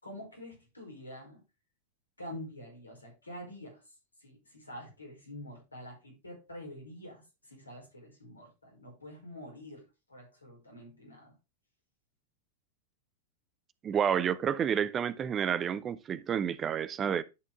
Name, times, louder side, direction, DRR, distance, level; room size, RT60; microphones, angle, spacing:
voice 1, 0.0-1.4 2.2-3.8 4.2-11.3, left 1 dB, 80° left, 5.2 m, -47 dB
voice 2, 13.8-17.2, right 8 dB, 25° right, 0.7 m, -30 dB
11.0 x 6.2 x 3.5 m
figure-of-eight pair, 90°, 0 cm